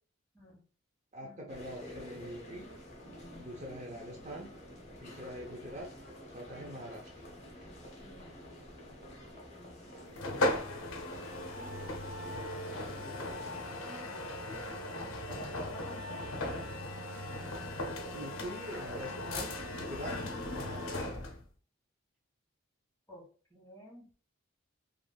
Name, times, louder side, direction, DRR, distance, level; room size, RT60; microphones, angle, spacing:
voice 1, 1.1-2.7 3.4-4.5 5.0-5.9 6.3-7.1 18.1-20.2 20.5-21.0, equal, 35° right, -1 dB, 0.5 m, -44 dB
sound 1, 1.5-13.7, left 1 dB, 35° left, 0.8 m, -49 dB
voice 2, 6.5-6.8 8.0-8.3 10.8-12.9 13.4-16.2 23.1-23.2 23.5-24.0, right 1 dB, 15° left, -4 dB, 1.1 m, -52 dB
sound 2, 10.2-21.4, left 1 dB, 70° left, 0.6 m, -37 dB
3.3 x 2.4 x 2.2 m, 0.40 s
head